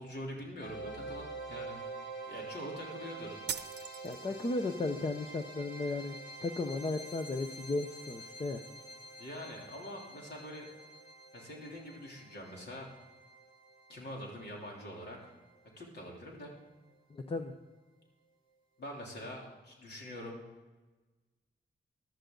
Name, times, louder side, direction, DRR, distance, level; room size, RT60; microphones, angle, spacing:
voice 1, 0.0-1.8 2.3-3.4 9.2-10.7 11.3-12.9 13.9-15.3 15.8-16.5 18.8-20.4, equal, 70° left, -1 dB, 3.3 m, -44 dB
sound 1, 0.6-15.6, right 2 dB, 55° left, 2.7 m, -47 dB
sound 2, 3.5-4.5, right 8 dB, 70° right, 0.7 m, -40 dB
voice 2, 4.0-6.2 6.4-8.6 17.1-17.5, left 3 dB, 30° left, 6 dB, 0.7 m, -35 dB
15.0 x 11.5 x 3.9 m, 1.2 s
wide cardioid pair, 160°, 18 cm